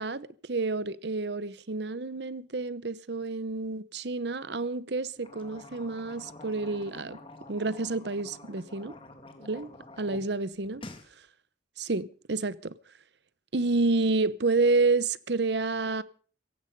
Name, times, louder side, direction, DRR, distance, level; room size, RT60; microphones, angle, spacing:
voice 1, 0.0-7.2 7.5-8.9 9.4-9.7 10.0-10.8 11.8-12.7 13.5-16.0, right 3 dB, 60° right, 0.9 m, -29 dB
sound 1, 5.2-10.2 10.5-11.1, left 2 dB, 30° left, 2.3 m, -48 dB
17.5 x 15.0 x 5.4 m
head